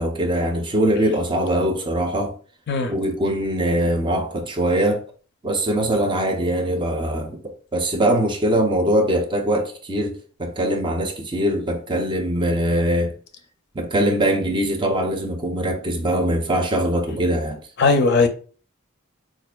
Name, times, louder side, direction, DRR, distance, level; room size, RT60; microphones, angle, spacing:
voice 1, 0.0-2.3 2.9-5.0 5.4-7.4 7.7-13.1 13.7-17.6, right 1 dB, 25° right, 0.5 m, -22 dB
voice 2, 17.8-18.3, left 4 dB, 55° left, 0.5 m, -17 dB
4.3 x 2.4 x 2.2 m
head